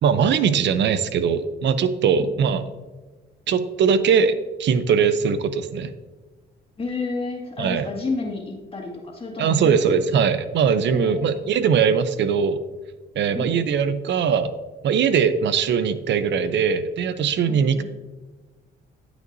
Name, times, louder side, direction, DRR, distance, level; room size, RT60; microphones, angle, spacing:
voice 1, 0.0-2.6 3.5-5.9 7.6-7.9 9.4-12.6 13.2-14.5 14.8-17.8, right 6 dB, 65° right, 12 dB, 0.6 m, -21 dB
voice 2, 6.8-10.0 10.9-11.4 13.3-13.6 17.5-17.8, left 3 dB, 30° left, 0 dB, 2.1 m, -31 dB
9.2 x 8.1 x 2.7 m, 1.3 s
cardioid pair, 90°, 20 cm